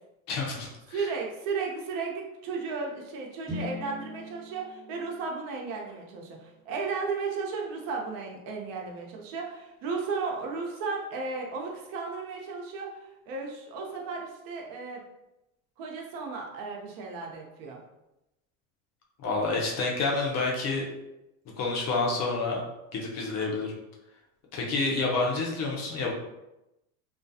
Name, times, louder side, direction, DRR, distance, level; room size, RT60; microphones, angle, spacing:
voice 1, 0.3-1.0 19.2-20.8 21.6-22.6 22.9-23.7 24.5-26.1, left 3 dB, 40° left, -1 dB, 0.6 m, -28 dB
voice 2, 0.9-15.0 15.8-17.8, right 4 dB, 50° right, 0 dB, 0.7 m, -34 dB
sound 1, 3.4-7.5, left 2 dB, 10° left, 1.1 m, -43 dB
2.4 x 2.2 x 2.6 m, 0.92 s
supercardioid pair, 115°, 44 cm